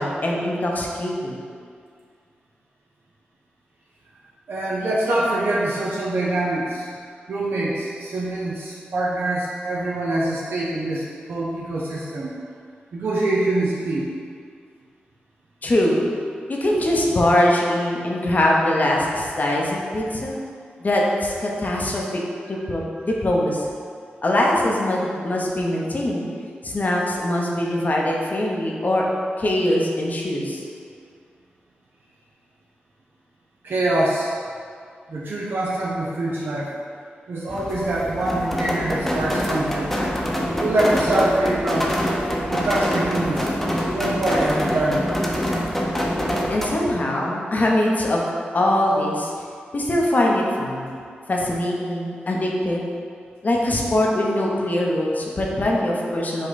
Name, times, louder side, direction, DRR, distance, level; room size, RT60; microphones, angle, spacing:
voice 1, 0.0-1.4 15.6-16.0 16.5-20.3 20.8-22.2 22.5-23.7 24.2-26.2 26.6-29.1 29.4-30.6 46.5-48.2 48.5-49.3 49.7-50.9 51.3-52.9 53.4-56.5, left 1 dB, 45° left, -2 dB, 0.8 m, -22 dB
voice 2, 4.5-7.0 7.3-12.3 12.9-14.1 33.6-34.3 35.1-36.7 37.3-39.9 40.6-41.9 42.5-45.1, right 1 dB, 70° right, -5 dB, 0.6 m, -24 dB
sound 1, 37.5-46.7, equal, 5° left, 0.8 m, -25 dB
5.1 x 2.2 x 4.0 m, 2.2 s
cardioid pair, 45°, 4 cm